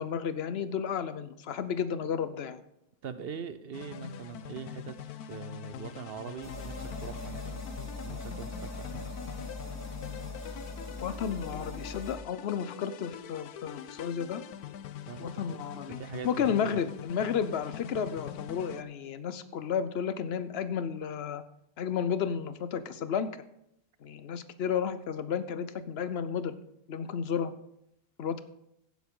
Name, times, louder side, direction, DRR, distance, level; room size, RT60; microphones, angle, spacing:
voice 1, 0.0-2.6 11.0-14.4 15.2-16.0 16.2-21.4 21.8-23.3 24.0-26.6 26.9-27.5 28.2-28.4, left 7 dB, 55° left, 13 dB, 0.7 m, -32 dB
voice 2, 3.0-7.6 8.0-9.1 15.1-15.6 15.9-16.6, right 6 dB, 60° right, 12 dB, 0.6 m, -42 dB
sound 1, 3.7-18.8, left 9 dB, 75° left, 1.1 m, -44 dB
sound 2, 6.4-12.2, left 2 dB, 10° left, 1.6 m, -40 dB
16.0 x 7.3 x 3.8 m, 0.79 s
omnidirectional pair, 1.6 m